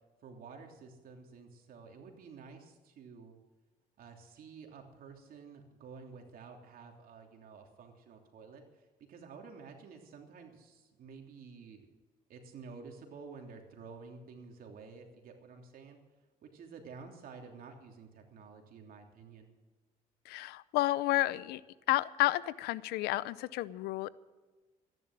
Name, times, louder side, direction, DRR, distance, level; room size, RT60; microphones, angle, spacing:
voice 1, 0.2-3.4 4.0-11.9 12.3-16.0 16.4-19.5, right 5 dB, 65° right, 3 dB, 3.1 m, -51 dB
voice 2, 20.3-21.6 21.9-24.1, left 17 dB, 90° left, 19 dB, 0.6 m, -31 dB
14.0 x 11.0 x 7.4 m, 1.2 s
cardioid pair, 80°, 16 cm